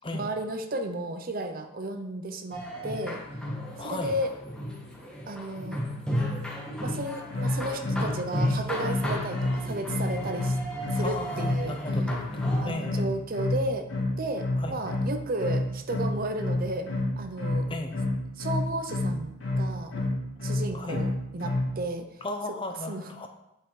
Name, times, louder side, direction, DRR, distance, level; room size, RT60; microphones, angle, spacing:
voice 1, 0.1-3.2 3.8-4.3 5.3-5.8 6.8-10.6 10.9-11.8 12.6-13.9 14.2-16.9 17.2-17.7 18.4-19.9 20.4-22.1 22.9-23.1, right 1 dB, 40° right, 8 dB, 0.6 m, -33 dB
sound 1, 2.5-12.7, equal, 5° left, 1.6 m, -34 dB
voice 2, 3.8-4.1 11.0-13.1 14.6-14.8 17.7-17.9 20.7-21.0 22.2-23.3, left 2 dB, 25° left, 5 dB, 0.7 m, -35 dB
sound 2, 7.3-21.8, left 2 dB, 60° left, 2.8 m, -29 dB
8.4 x 5.6 x 4.8 m, 0.90 s
head